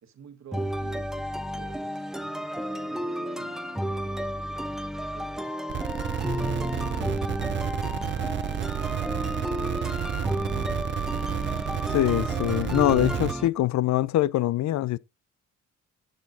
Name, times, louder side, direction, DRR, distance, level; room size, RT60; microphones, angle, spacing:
voice 1, 0.0-2.1 2.4-5.5 6.1-8.7, right 7 dB, 60° right, 1.5 m, -52 dB
sound 1, 0.5-13.5, equal, ahead, 0.7 m, -32 dB
sound 2, 5.7-13.3, right 10 dB, 40° right, 0.4 m, -31 dB
voice 2, 11.9-15.0, left 14 dB, 65° left, 0.4 m, -23 dB
13.0 x 6.4 x 2.6 m
cardioid pair, 75°, 31 cm